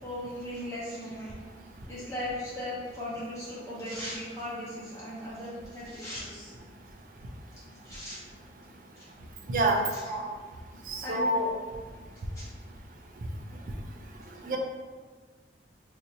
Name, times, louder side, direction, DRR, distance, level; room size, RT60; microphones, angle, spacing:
voice 1, 0.0-1.3 1.9-6.5 7.8-8.2 9.0-9.1 9.9-10.2 11.0-11.3 12.3-12.5 14.4-14.5, equal, 15° left, -10 dB, 0.9 m, -38 dB
voice 2, 9.5-9.8 10.9-11.5 14.4-14.6, right 1 dB, 50° right, 2 dB, 0.4 m, -26 dB
2.8 x 2.4 x 4.2 m, 1.5 s
head